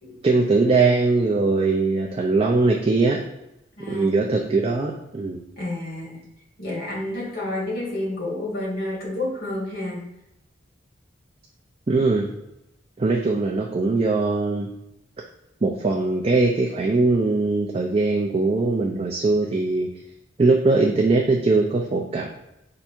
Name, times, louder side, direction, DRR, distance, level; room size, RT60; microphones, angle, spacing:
voice 1, 0.2-3.2 3.9-5.4 11.9-12.3 13.0-14.7 15.6-19.9 20.4-22.3, right 3 dB, 30° right, 0 dB, 0.4 m, -21 dB
voice 2, 3.8-4.2 5.6-6.2 6.6-10.0, left 1 dB, 50° left, -3 dB, 1.7 m, -30 dB
4.6 x 2.6 x 4.3 m, 0.89 s
head